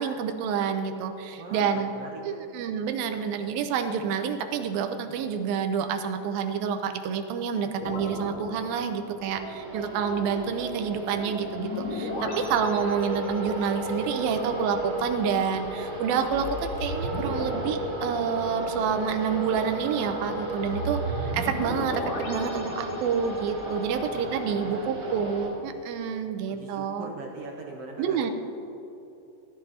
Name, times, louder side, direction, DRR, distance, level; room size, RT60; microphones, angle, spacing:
voice 1, 0.0-1.9 2.2-27.1 28.0-28.3, right 7 dB, 90° right, 7 dB, 2.7 m, -28 dB
voice 2, 1.4-2.2 24.1-24.9 26.5-28.3, right 3 dB, 55° right, 0 dB, 2.0 m, -41 dB
sound 1, 7.8-9.3 11.6-13.6 16.3-18.8 20.6-23.6, equal, 50° left, 1.6 m, -35 dB
sound 2, 9.2-25.5, right 1 dB, 20° right, 3.9 m, -34 dB
17.0 x 13.0 x 4.3 m, 2.9 s
omnidirectional pair, 4.1 m